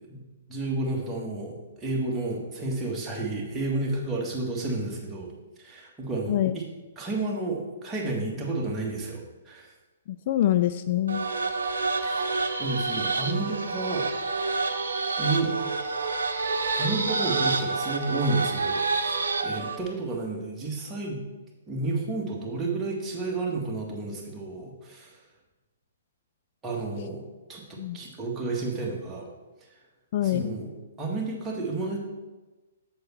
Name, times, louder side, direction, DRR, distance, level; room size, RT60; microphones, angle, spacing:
voice 1, 0.1-5.3 5.6-6.6 7.0-9.7 12.0-12.3 12.6-14.1 15.2-15.5 16.8-21.2 21.7-25.2 26.6-29.3 30.2-30.7 31.0-32.0, right 2 dB, 15° right, -3 dB, 1.9 m, -31 dB
voice 2, 10.1-11.2 27.8-28.0 30.1-30.5, left 12 dB, 45° left, 11 dB, 0.3 m, -25 dB
sound 1, 11.1-19.8, right 3 dB, 70° right, 0.9 m, -28 dB
7.6 x 7.1 x 4.6 m, 1.1 s
figure-of-eight pair, 120°, 0 cm